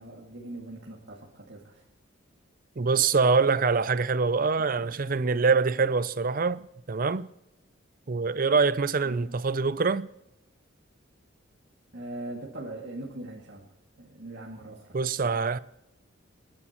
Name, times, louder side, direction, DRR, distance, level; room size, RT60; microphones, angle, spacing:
voice 1, 0.0-1.8 4.8-5.2 9.0-9.3 11.9-13.7 14.0-14.9 15.2-15.3, right 1 dB, 60° right, 2.2 m, -41 dB
voice 2, 2.8-7.3 8.1-10.1 14.9-15.6, right 4 dB, 45° right, 0.5 m, -24 dB
30.0 x 10.0 x 3.0 m
head